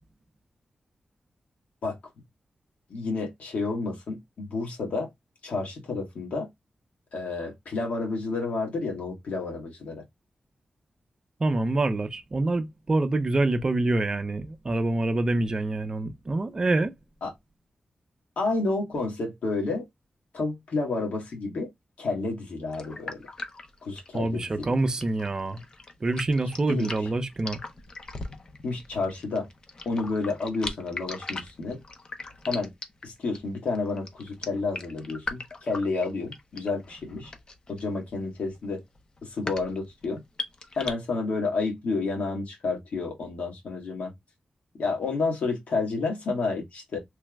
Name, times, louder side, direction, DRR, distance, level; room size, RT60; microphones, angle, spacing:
voice 1, 2.9-5.1 5.4-6.5 7.1-10.0 17.2-17.3 18.4-19.8 20.3-21.7 22.0-23.2 23.8-24.7 26.7-26.9 28.6-29.5 29.8-31.8 32.5-32.7 33.0-37.3 37.7-38.8 39.2-40.2 40.8-44.1 44.8-47.0, left 3 dB, 75° left, 1.3 m, -30 dB
voice 2, 11.4-16.9 24.1-25.6 26.0-27.6, right 2 dB, 30° right, 0.4 m, -26 dB
sound 1, 22.7-40.9, left 3 dB, 35° left, 0.5 m, -39 dB
3.2 x 2.0 x 3.3 m
wide cardioid pair, 165°, 2 cm